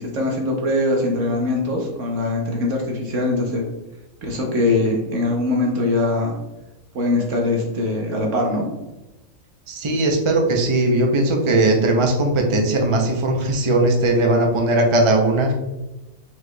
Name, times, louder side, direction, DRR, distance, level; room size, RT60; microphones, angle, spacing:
voice 1, 0.0-3.7 4.2-6.4 6.9-8.7, left 2 dB, 65° right, 0 dB, 1.2 m, -22 dB
voice 2, 9.7-15.5, right 2 dB, 45° right, 2 dB, 0.4 m, -18 dB
4.7 x 4.4 x 2.2 m, 1.0 s
omnidirectional pair, 1.4 m